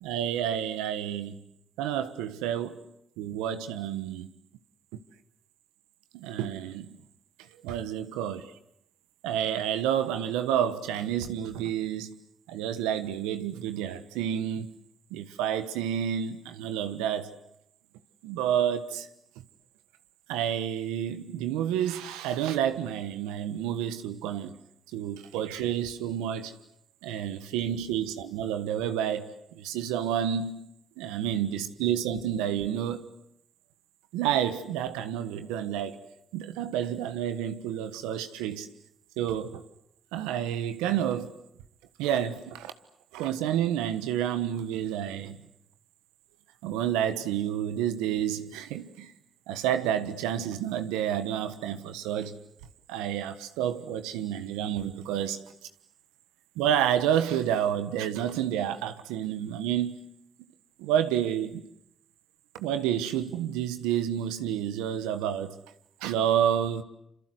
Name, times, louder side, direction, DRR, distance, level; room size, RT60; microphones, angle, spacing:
voice 1, 0.0-1.4 1.8-2.8 3.2-4.3 6.1-6.9 7.6-8.5 9.2-12.2 12.5-14.7 15.1-17.3 18.2-19.1 20.3-24.5 24.9-26.5 27.0-30.6 31.0-33.1 34.1-36.0 36.3-38.7 39.2-39.6 40.1-41.3 42.0-42.7 43.1-45.4 46.6-49.1 49.5-52.3 52.9-55.4 56.6-60.0 60.8-61.6 62.5-65.6 66.0-66.8, right 10 dB, 90° right, 1.4 m, -29 dB
27.0 x 26.0 x 7.9 m
supercardioid pair, 55°, 0 cm